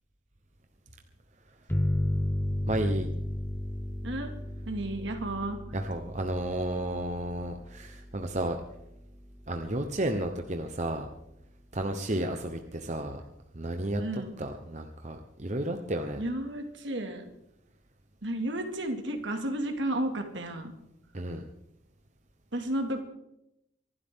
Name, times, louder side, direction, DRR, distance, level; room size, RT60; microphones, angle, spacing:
sound 1, 1.7-11.0, left 1 dB, 10° left, 0.9 m, -35 dB
voice 1, 2.7-3.1 5.7-8.6 9.5-11.1 11.7-13.2 13.5-14.0 14.4-16.2 21.1-21.4, right 1 dB, 35° right, 5 dB, 1.0 m, -32 dB
voice 2, 4.7-5.6 14.0-14.3 16.2-17.3 18.2-20.7 22.5-23.0, right 1 dB, 70° right, 5 dB, 2.3 m, -32 dB
24.5 x 12.0 x 3.8 m, 0.82 s
head